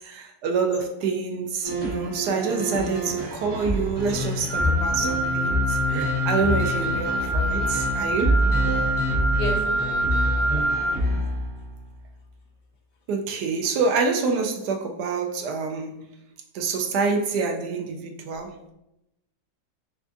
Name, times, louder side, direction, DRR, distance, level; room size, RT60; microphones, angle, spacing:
voice 1, 0.0-8.3 13.1-15.9 16.5-18.7, right 4 dB, 75° right, 3 dB, 1.1 m, -27 dB
sound 1, 1.6-11.8, equal, 45° right, 1.2 m, -26 dB
Wind instrument woodwind instrument, 4.5-10.9, right 2 dB, 30° right, 1.2 m, -26 dB
voice 2, 9.3-10.1 10.4-11.2, equal, 70° left, 1 dB, 1.0 m, -36 dB
5.8 x 2.4 x 2.5 m, 0.87 s
omnidirectional pair, 1.9 m